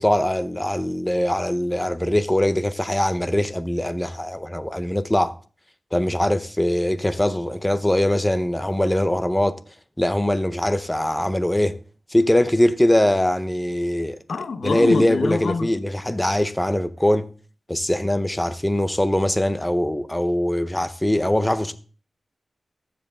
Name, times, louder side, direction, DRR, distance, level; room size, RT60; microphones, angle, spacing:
voice 1, 0.0-5.4 5.9-9.6 10.0-11.8 12.1-14.2 14.6-17.3 17.7-21.7, left 1 dB, 10° left, 0.6 m, -22 dB
voice 2, 14.3-15.7, left 4 dB, 85° left, 0.8 m, -25 dB
14.0 x 5.1 x 3.5 m
wide cardioid pair, 110°, 0 cm